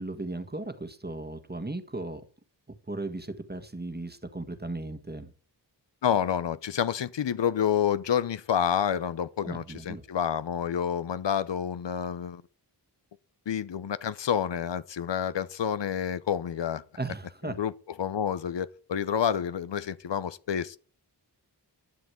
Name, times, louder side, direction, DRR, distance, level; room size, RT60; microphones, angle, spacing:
voice 1, 0.0-2.2 2.9-5.3 9.4-10.0 17.0-17.6, right 2 dB, 25° right, 1.6 m, -36 dB
voice 2, 6.0-12.4 13.5-16.8 17.4-17.7 18.0-20.8, left 8 dB, 85° left, 0.7 m, -28 dB
11.5 x 7.4 x 8.1 m
wide cardioid pair, 65°, 42 cm